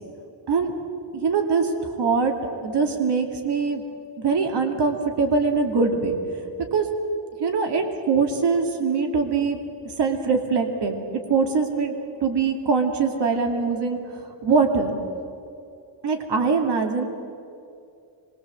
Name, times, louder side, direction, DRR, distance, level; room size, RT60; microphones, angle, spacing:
voice 1, 1.1-2.3 2.6-3.8 4.2-6.2 6.7-6.9 7.4-9.6 9.8-11.9 12.2-15.0 16.0-17.1, right 5 dB, 60° right, 3 dB, 2.6 m, -23 dB
25.5 x 22.0 x 7.7 m, 2.5 s
wide cardioid pair, 150°, 45 cm